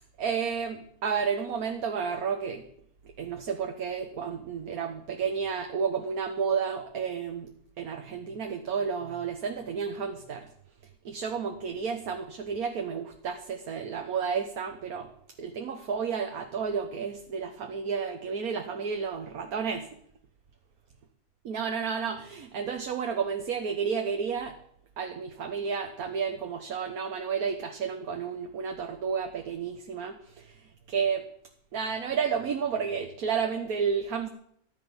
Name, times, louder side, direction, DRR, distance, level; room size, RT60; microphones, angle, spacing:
voice 1, 0.2-2.6 3.2-7.5 7.8-10.5 11.0-15.1 15.4-19.9 21.4-24.6 25.0-31.3 31.7-34.3, right 6 dB, 70° right, 5 dB, 1.6 m, -31 dB
14.5 x 10.5 x 7.1 m, 0.67 s
omnidirectional pair, 1.7 m